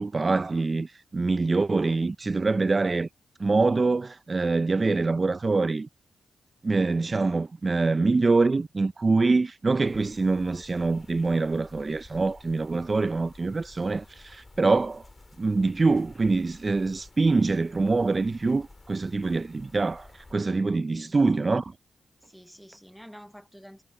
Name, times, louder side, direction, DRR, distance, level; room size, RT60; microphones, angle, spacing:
voice 1, 0.0-3.1 3.4-5.9 6.6-15.1 15.4-21.7, right 3 dB, 35° right, 0.4 m, -25 dB
sound 1, 9.8-20.3, left 2 dB, 30° left, 2.3 m, -52 dB
voice 2, 22.2-23.8, equal, ahead, 0.9 m, -48 dB
cardioid pair, 65°, 0 cm